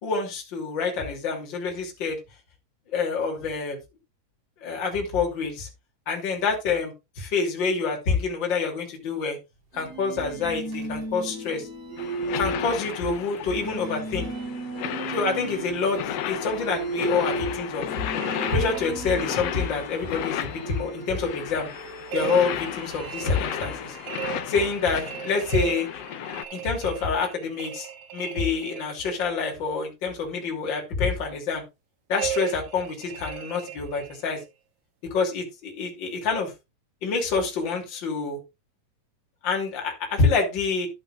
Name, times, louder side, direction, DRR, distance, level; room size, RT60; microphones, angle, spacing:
voice 1, 0.0-2.2 2.9-3.8 4.6-5.7 6.1-9.4 9.7-11.7 12.3-14.3 15.1-17.8 18.5-21.7 22.1-24.0 24.5-25.9 26.5-27.9 28.1-31.6 32.1-34.4 35.1-36.5 37.0-38.4 39.4-40.9, left 4 dB, 35° left, 1 dB, 3.2 m, -27 dB
sound 1, 9.7-24.8, right 2 dB, 45° right, 5.5 m, -36 dB
sound 2, 12.0-26.5, left 10 dB, 75° left, 1.5 m, -34 dB
sound 3, 17.9-19.5 22.1-29.5 32.1-34.4, right 11 dB, 65° right, 2.2 m, -37 dB
11.5 x 9.8 x 2.4 m, 0.25 s
omnidirectional pair, 4.0 m